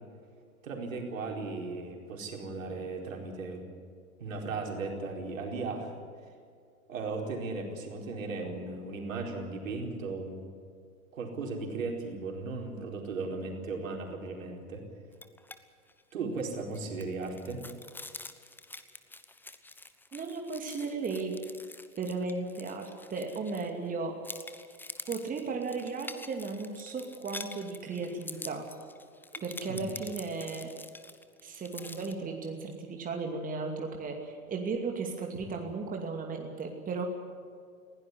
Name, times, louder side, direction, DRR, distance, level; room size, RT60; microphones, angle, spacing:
voice 1, 0.6-3.6 4.2-5.9 6.9-10.4 11.1-14.8 16.1-17.6 29.3-29.8, right 3 dB, 65° right, 2 dB, 4.6 m, -36 dB
sound 1, 15.1-15.6 15.9-16.0 16.4-23.9 24.2-32.1, left 2 dB, 5° left, 1.1 m, -46 dB
voice 2, 20.1-21.4 22.0-24.1 25.1-28.6 29.4-30.7 31.4-37.0, right 4 dB, 20° right, 3 dB, 2.6 m, -35 dB
21.0 x 16.5 x 9.9 m, 2.2 s
figure-of-eight pair, 90°, 43 cm